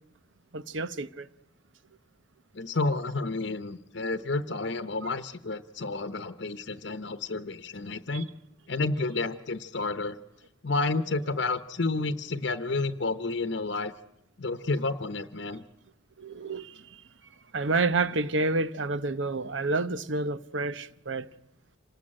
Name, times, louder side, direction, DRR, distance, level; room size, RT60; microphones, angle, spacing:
voice 1, 0.5-1.3 8.1-8.2 16.2-17.0 17.5-21.3, right 3 dB, 70° right, 0.9 m, -29 dB
voice 2, 2.5-8.3 8.7-10.2 10.6-13.9 14.4-15.6, left 3 dB, 60° left, 0.9 m, -30 dB
27.0 x 19.0 x 8.8 m
head